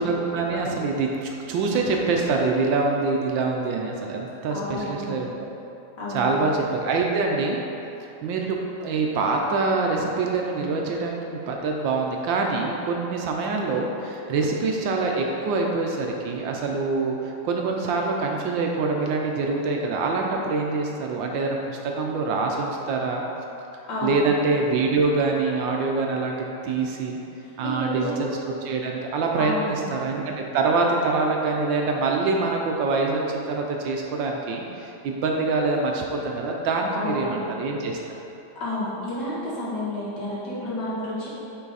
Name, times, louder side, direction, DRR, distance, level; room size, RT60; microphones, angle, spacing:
voice 1, 0.0-5.3 6.1-7.6 8.2-23.2 24.0-26.4 26.6-27.2 27.6-38.0, right 3 dB, 75° right, 0 dB, 1.3 m, -25 dB
voice 2, 4.5-5.2 6.0-6.3 23.9-24.2 27.6-28.2 29.4-29.9 36.9-37.5 38.6-41.3, left 1 dB, 60° left, -8 dB, 2.2 m, -30 dB
8.3 x 4.0 x 4.0 m, 3.0 s
omnidirectional pair, 2.2 m